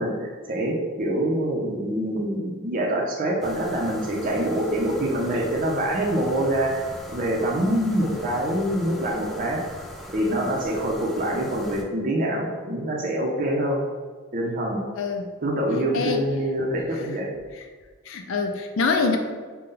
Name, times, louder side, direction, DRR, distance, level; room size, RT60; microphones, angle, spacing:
voice 1, 0.0-9.6 10.1-13.8 14.3-14.8 15.4-17.3, right 1 dB, 40° right, -2 dB, 0.6 m, -25 dB
sound 1, 3.4-11.8, equal, ahead, 0.3 m, -40 dB
voice 2, 15.0-15.3 15.9-16.2 17.0-17.1 17.5-17.6 18.1-19.2, left 4 dB, 70° left, 5 dB, 0.4 m, -25 dB
5.3 x 2.2 x 3.7 m, 1.5 s
head